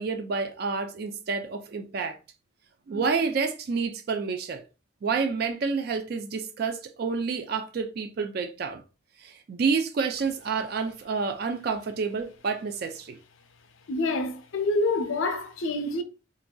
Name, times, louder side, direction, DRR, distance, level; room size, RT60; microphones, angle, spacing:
voice 1, 0.0-2.2 2.9-4.6 5.0-8.8 9.2-13.2, right 5 dB, 50° right, 0.3 m, -29 dB
voice 2, 13.9-16.0, left 2 dB, 75° left, 0.5 m, -27 dB
3.8 x 2.6 x 2.2 m
head